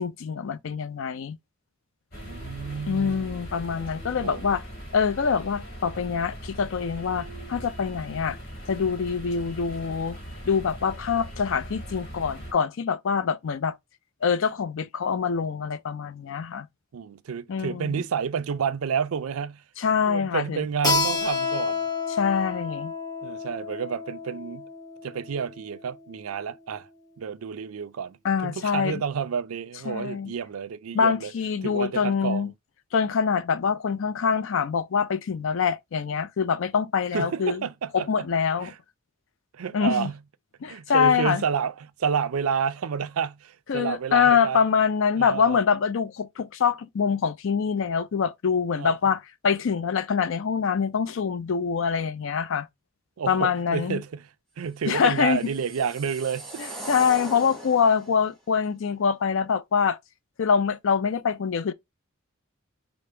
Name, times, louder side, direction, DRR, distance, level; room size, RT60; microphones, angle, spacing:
voice 1, 0.0-1.4 2.9-4.6 4.9-8.4 8.7-10.2 10.5-13.7 14.2-16.7 17.5-18.0 19.8-20.7 22.2-22.9 28.2-29.0 29.9-30.3 30.9-32.5 32.9-37.6 37.9-38.7 39.7-40.1 40.6-41.4 43.7-52.7 53.3-54.0 54.9-55.4 56.6-60.0 60.4-61.7, left 6 dB, 65° left, 0.4 m, -25 dB
sound 1, 2.1-12.5, equal, 45° left, 1.8 m, -40 dB
voice 2, 2.1-3.4 4.2-4.5 16.9-19.6 20.0-21.8 23.2-24.7 25.0-26.9 27.2-28.2 28.4-31.3 31.6-32.5 37.1-38.3 38.6-38.7 39.5-40.2 40.7-44.6 45.2-45.6 48.8-48.9 53.2-54.2 54.6-56.6, right 6 dB, 85° right, 0.4 m, -30 dB
Keyboard (musical), 20.8-26.1, left 4 dB, 20° left, 0.9 m, -30 dB
sound 2, 55.0-58.2, right 1 dB, ahead, 1.3 m, -39 dB
5.0 x 2.1 x 4.3 m
head